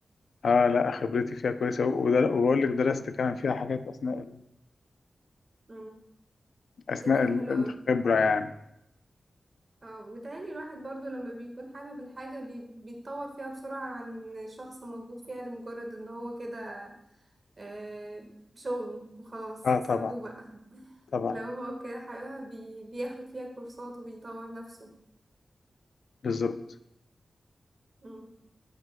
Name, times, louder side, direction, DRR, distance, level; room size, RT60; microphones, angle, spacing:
voice 1, 0.4-4.4 6.9-8.5 19.6-20.1 21.1-21.4 26.2-26.6, left 5 dB, 80° left, 11 dB, 0.4 m, -26 dB
voice 2, 7.0-7.8 9.8-16.9 17.6-19.6 19.9-21.0 21.3-25.0 28.0-28.3, right 1 dB, 35° right, 2 dB, 1.5 m, -40 dB
14.0 x 5.9 x 2.2 m, 0.80 s
wide cardioid pair, 145°, 0 cm